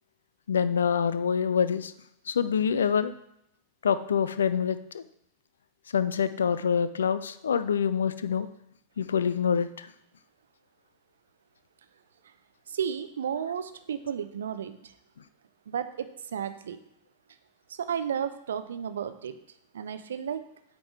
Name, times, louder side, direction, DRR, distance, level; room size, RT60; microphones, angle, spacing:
voice 1, 0.5-1.9 2.3-3.1 3.8-5.0 5.9-8.5 9.0-9.9, left 7 dB, 70° left, 14 dB, 0.4 m, -26 dB
voice 2, 12.7-14.9 15.7-16.8 17.7-19.4 19.7-20.4, right 8 dB, 65° right, 11 dB, 0.5 m, -33 dB
8.6 x 3.7 x 4.9 m, 0.78 s
figure-of-eight pair, 90°, 0 cm